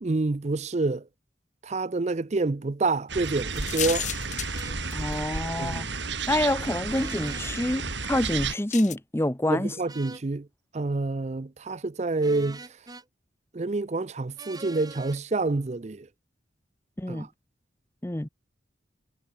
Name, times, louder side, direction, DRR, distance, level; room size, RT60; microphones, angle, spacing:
voice 1, 0.0-1.0 1.6-4.1 5.6-5.9 9.5-10.5 10.7-12.6 13.5-16.1 17.1-17.3, right 3 dB, 35° right, 0.5 m, -28 dB
sound 1, 3.1-8.6, right 4 dB, 70° right, 4.6 m, -32 dB
sound 2, 3.5-5.4 6.2-6.3 8.7-9.0, left 11 dB, 40° left, 2.0 m, -33 dB
sound 3, 4.5-4.8 6.9-7.5 9.9-10.3 12.2-13.1 14.4-15.2, right 3 dB, 20° right, 7.2 m, -43 dB
voice 2, 4.9-5.9 6.3-9.7 17.0-17.3 18.0-18.3, left 1 dB, 15° left, 0.8 m, -27 dB
head